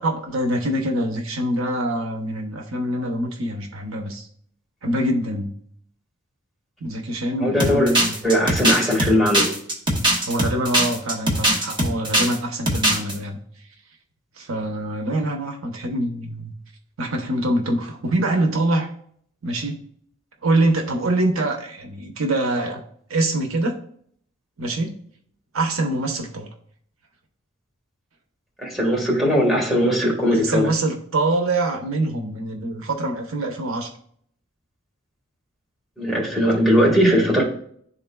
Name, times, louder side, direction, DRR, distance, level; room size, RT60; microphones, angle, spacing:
voice 1, 0.0-4.3 4.8-5.5 6.8-8.2 10.3-13.4 14.4-16.5 17.0-18.9 19.4-19.8 20.4-22.8 23.1-23.8 24.6-24.9 25.5-26.5 30.3-33.9, right 1 dB, 85° right, 3 dB, 0.9 m, -24 dB
voice 2, 7.4-7.9 8.2-9.5 28.6-30.7 36.0-37.4, equal, ahead, -4 dB, 1.5 m, -19 dB
sound 1, 7.6-12.4 12.7-13.1, right 1 dB, 25° right, 1.2 m, -20 dB
11.5 x 3.8 x 2.3 m, 0.62 s
head